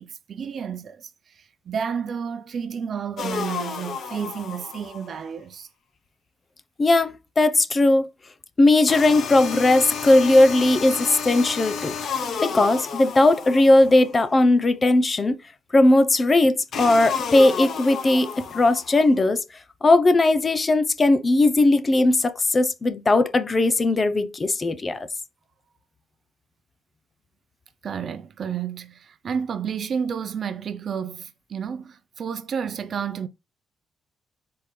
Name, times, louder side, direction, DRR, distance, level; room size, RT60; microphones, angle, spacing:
voice 1, 0.0-5.7 10.9-11.0 27.8-33.3, right 7 dB, 55° right, 0.5 m, -31 dB
sound 1, 3.2-5.1 8.9-14.1 16.7-19.1, left 6 dB, 60° left, 0.9 m, -31 dB
voice 2, 6.8-8.1 8.6-12.0 12.4-15.4 15.7-19.4 19.8-25.1, left 2 dB, 30° left, 0.6 m, -18 dB
4.3 x 3.6 x 3.2 m
cardioid pair, 90°, 0 cm